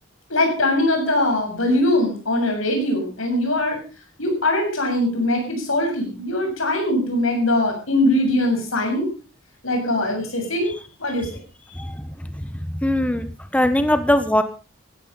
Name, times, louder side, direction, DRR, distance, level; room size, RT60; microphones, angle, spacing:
voice 1, 0.3-3.8 4.2-9.1 9.6-10.7 11.0-11.3, left 1 dB, 85° left, 3 dB, 7.6 m, -21 dB
voice 2, 11.8-12.1 12.5-13.2 13.5-14.4, left 1 dB, 5° left, 11 dB, 1.1 m, -20 dB
15.5 x 13.5 x 5.4 m, 0.35 s
head